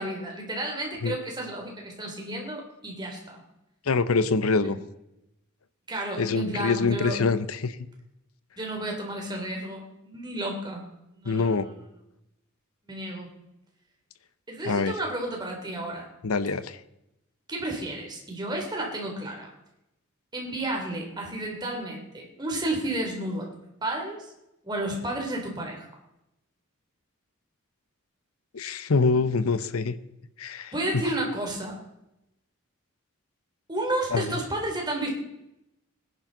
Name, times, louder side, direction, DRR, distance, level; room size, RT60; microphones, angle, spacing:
voice 1, 0.0-3.4 5.9-7.2 8.6-10.8 11.1-11.6 12.9-13.3 14.5-16.1 17.5-19.5 20.3-23.5 23.8-24.3 24.6-25.9 30.7-31.8 33.7-35.1, right 1 dB, 20° right, 0 dB, 3.0 m, -32 dB
voice 2, 3.9-4.8 6.2-7.8 11.3-11.7 14.6-14.9 16.2-16.8 28.5-30.0 30.4-31.0 34.1-34.4, left 4 dB, 90° left, 14 dB, 0.8 m, -25 dB
20.0 x 10.5 x 3.9 m, 0.87 s
head